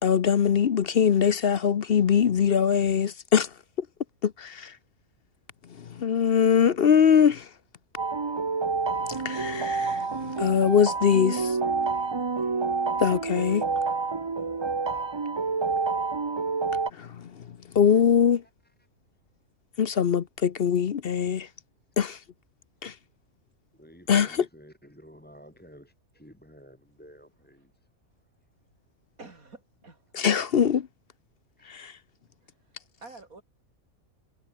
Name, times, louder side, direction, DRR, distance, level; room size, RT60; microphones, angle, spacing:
voice 1, 0.0-3.5 3.8-3.9 4.2-4.7 5.9-7.5 9.1-11.4 13.0-13.6 16.9-18.4 19.8-21.5 22.0-22.2 22.8-22.9 24.1-24.5 30.1-30.9 31.7-31.9, left 7 dB, 50° left, 0.9 m, -22 dB
sound 1, 8.0-16.9, right 4 dB, 25° right, 0.6 m, -28 dB
voice 2, 11.2-12.0 29.2-30.0 32.4-32.5 33.0-33.4, right 3 dB, 80° right, 4.3 m, -46 dB
voice 3, 23.7-27.7 31.6-31.7, equal, 5° left, 3.2 m, -52 dB
omnidirectional pair, 1.5 m